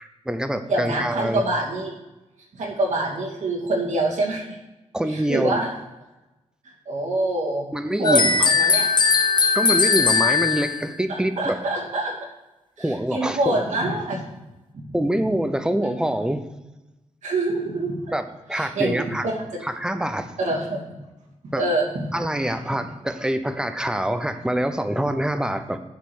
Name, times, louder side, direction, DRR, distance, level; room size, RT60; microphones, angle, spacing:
voice 1, 0.0-1.4 4.9-5.6 7.7-8.7 9.5-11.6 12.8-13.6 14.9-16.4 18.1-18.2 18.5-19.3 19.6-20.3 21.5-21.6 22.1-25.8, right 1 dB, 5° right, 9 dB, 0.7 m, -25 dB
voice 2, 0.7-1.9 2.5-4.6 5.1-5.7 6.6-7.7 8.0-8.9 11.1-12.1 12.8-14.2 14.9-15.0 17.2-17.9 18.5-18.9 19.2-19.4 20.4-20.9 21.6-21.9, right 2 dB, 80° right, -4 dB, 2.6 m, -25 dB
sound 1, 8.0-10.9, left 5 dB, 40° left, 0.7 m, -19 dB
10.5 x 5.0 x 6.4 m, 1.0 s
wide cardioid pair, 130°, 12 cm